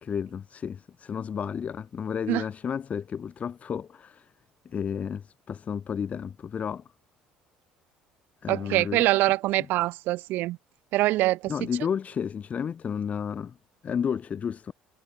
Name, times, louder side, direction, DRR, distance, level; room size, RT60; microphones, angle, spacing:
voice 1, 0.0-4.3 4.6-6.8 8.4-9.1 11.5-13.6 13.8-14.7, left 7 dB, 40° left, 0.8 m, -32 dB
voice 2, 8.5-10.6 10.9-11.5, right 17 dB, 65° right, 0.4 m, -24 dB
hypercardioid pair, 60°, 4 cm